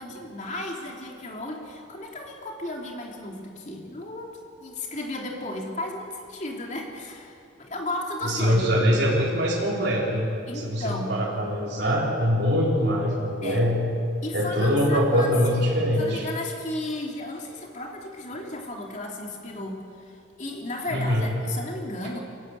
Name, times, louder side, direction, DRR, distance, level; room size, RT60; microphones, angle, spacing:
voice 1, 0.0-8.9 10.5-11.2 13.4-13.7 14.2-15.3 16.0-22.2, left 1 dB, 40° left, 0 dB, 3.2 m, -34 dB
voice 2, 8.2-13.8 14.3-16.2 20.9-21.3, equal, 55° right, -6 dB, 4.2 m, -23 dB
23.5 x 15.5 x 9.4 m, 2.5 s
head